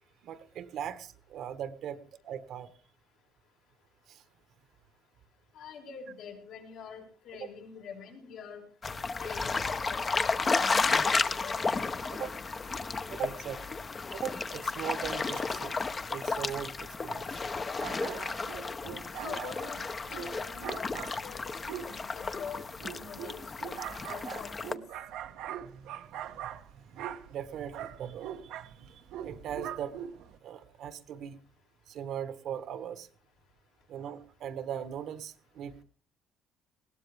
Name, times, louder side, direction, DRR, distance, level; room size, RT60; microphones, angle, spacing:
voice 1, 0.2-2.7 4.1-4.2 12.1-12.3 13.1-13.6 14.1-15.7 16.1-17.4 25.6-26.2 26.8-30.0 30.4-31.4 31.9-33.1 33.9-35.8, right 9 dB, 65° right, 12 dB, 1.4 m, -40 dB
voice 2, 5.5-8.7 9.2-11.6 19.2-19.8 20.1-22.6 22.9-23.4 24.1-24.8, left 6 dB, 80° left, 0 dB, 5.5 m, -45 dB
sound 1, 8.8-24.7, left 4 dB, 25° left, 0.9 m, -33 dB
sound 2, 17.8-30.4, right 10 dB, 90° right, 1.2 m, -42 dB
20.5 x 17.5 x 3.5 m, 0.40 s
cardioid pair, 125°, 0 cm